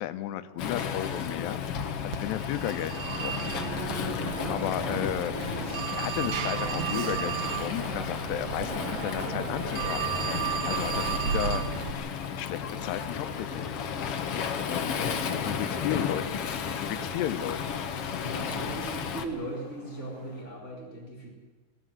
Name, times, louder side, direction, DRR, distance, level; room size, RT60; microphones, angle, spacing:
voice 1, 0.0-1.6 2.0-3.4 4.5-5.3 5.9-10.1 10.6-11.9 12.3-13.7 14.6-14.9 15.4-17.6, left 12 dB, 85° left, 12 dB, 3.0 m, -34 dB
Waves surf, 0.6-19.3, left 7 dB, 65° left, 1.5 m, -33 dB
Telephone, 2.1-11.9, right 9 dB, 80° right, 1.5 m, -33 dB
sound 1, 12.4-20.4, left 1 dB, 5° left, 5.2 m, -50 dB
voice 2, 15.6-16.2 18.2-21.3, right 1 dB, 15° right, -2 dB, 4.1 m, -39 dB
23.5 x 17.5 x 7.6 m, 1.2 s
omnidirectional pair, 4.7 m